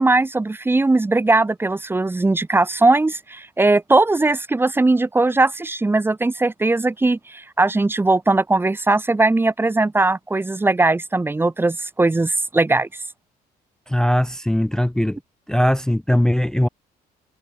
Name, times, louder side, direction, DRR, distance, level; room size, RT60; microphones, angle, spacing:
voice 1, 0.0-12.9, right 2 dB, 15° right, 1.2 m, -19 dB
voice 2, 13.9-15.2 15.5-16.7, left 1 dB, 5° left, 0.3 m, -19 dB
cardioid pair, 110°, 17 cm